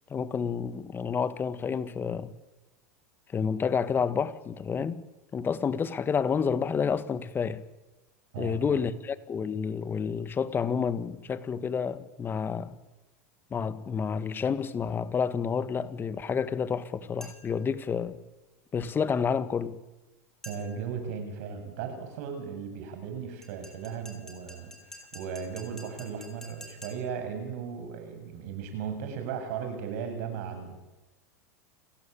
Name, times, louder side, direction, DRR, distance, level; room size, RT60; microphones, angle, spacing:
voice 1, 0.1-2.3 3.3-5.0 5.3-7.6 8.4-12.7 13.5-18.2 18.7-19.8, left 6 dB, 25° left, 1.7 m, -29 dB
voice 2, 8.3-8.8 20.4-30.7, right 7 dB, 65° right, 7.9 m, -36 dB
sound 1, 17.2-17.7 20.4-20.9 23.4-27.3, left 1 dB, 5° left, 6.0 m, -49 dB
29.5 x 17.0 x 8.8 m
hypercardioid pair, 105°, 9 cm